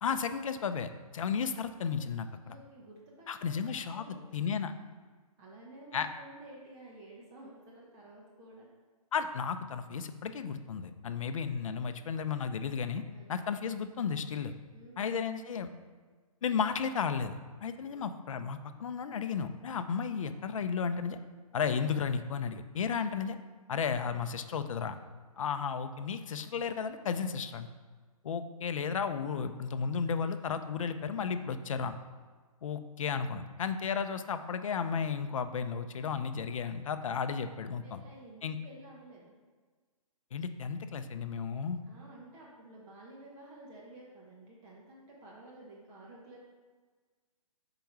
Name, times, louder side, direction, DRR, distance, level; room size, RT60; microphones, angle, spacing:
voice 1, 0.0-2.5 3.3-4.0 4.3-4.7 5.9-6.1 9.1-13.0 13.3-14.5 15.0-15.7 16.4-21.2 21.5-23.4 23.7-25.0 25.4-27.7 28.2-31.9 32.6-38.0 38.4-38.6 40.3-41.8, left 6 dB, 60° left, 10 dB, 0.6 m, -33 dB
voice 2, 2.4-4.6 5.4-8.7 13.1-13.3 14.7-15.0 17.8-18.0 37.8-39.4 41.9-46.4, right 2 dB, 15° right, -4 dB, 0.9 m, -52 dB
5.3 x 4.8 x 4.6 m, 1.4 s
hypercardioid pair, 155°, 19 cm